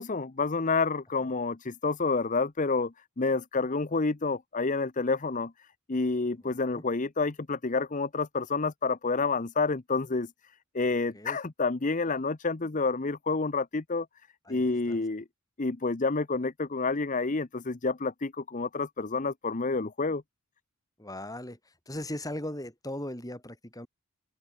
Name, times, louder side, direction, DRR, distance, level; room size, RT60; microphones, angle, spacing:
voice 1, 0.0-10.3 10.7-14.1 14.5-15.2 15.6-20.2, left 3 dB, 35° left, 0.8 m, -29 dB
voice 2, 6.4-6.8 11.1-11.4 14.5-15.0 21.0-21.6 21.9-23.9, left 1 dB, 15° left, 7.3 m, -38 dB
open air
head